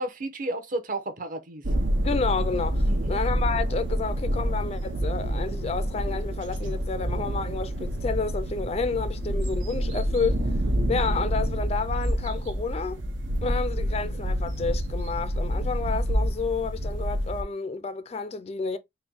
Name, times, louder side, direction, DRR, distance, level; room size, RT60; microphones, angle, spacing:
voice 1, 0.0-1.6 2.8-3.2, right 2 dB, 45° right, 0.8 m, -32 dB
sound 1, 1.6-17.4, equal, 85° right, 0.8 m, -27 dB
voice 2, 2.0-13.0 13.4-18.8, left 4 dB, 35° left, 0.3 m, -30 dB
4.3 x 2.1 x 3.8 m
head